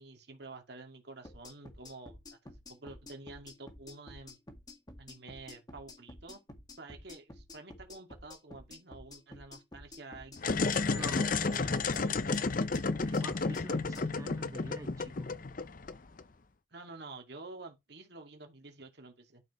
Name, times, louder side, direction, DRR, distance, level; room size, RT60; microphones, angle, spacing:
voice 1, 0.0-4.4 5.0-6.4 6.8-12.7 16.7-19.4, right 3 dB, 60° right, 2.3 m, -49 dB
sound 1, 1.2-14.1, left 2 dB, 20° left, 1.9 m, -51 dB
sound 2, 10.4-16.2, left 4 dB, 45° left, 0.7 m, -32 dB
voice 2, 10.8-11.3 13.0-15.3, right 1 dB, 15° right, 1.8 m, -45 dB
12.0 x 6.4 x 3.2 m
head